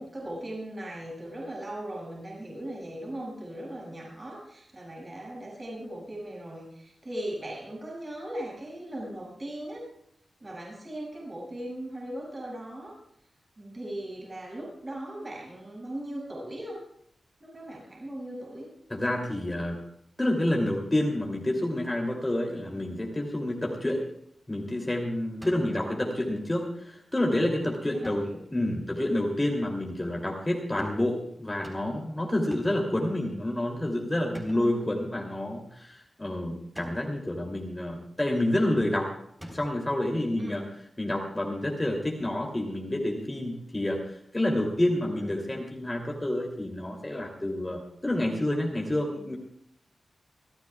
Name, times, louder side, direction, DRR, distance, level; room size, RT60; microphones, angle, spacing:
voice 1, 0.0-9.9 10.4-13.0 13.6-16.8 17.4-18.7 25.6-25.8 27.9-28.4 28.9-29.1 34.5-34.9 40.4-40.6 45.1-45.5, right 1 dB, 30° right, -3 dB, 7.2 m, -39 dB
voice 2, 18.9-19.8 20.2-24.0 24.5-28.2 28.5-39.1 39.5-40.6 41.0-49.4, left 1 dB, 15° left, 0 dB, 2.9 m, -29 dB
sound 1, 25.4-25.9 28.0-28.4 30.8-31.1 31.6-32.1 32.5-32.9 34.3-34.8 36.7-37.2 39.4-39.9, equal, 15° right, 4.0 m, -45 dB
28.0 x 14.5 x 2.4 m, 0.70 s
wide cardioid pair, 105°, 0 cm